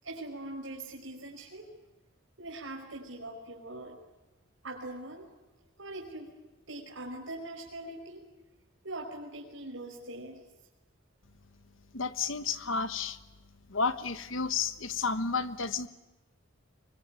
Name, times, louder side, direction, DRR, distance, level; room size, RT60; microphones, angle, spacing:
voice 1, 0.0-1.7 2.4-4.0 4.6-5.3 5.8-6.3 6.7-8.3 8.8-10.4, right 2 dB, 80° right, -1 dB, 5.2 m, -42 dB
voice 2, 11.9-13.2 13.7-15.9, left 5 dB, 80° left, 11 dB, 1.4 m, -31 dB
25.0 x 24.0 x 9.2 m, 1.1 s
head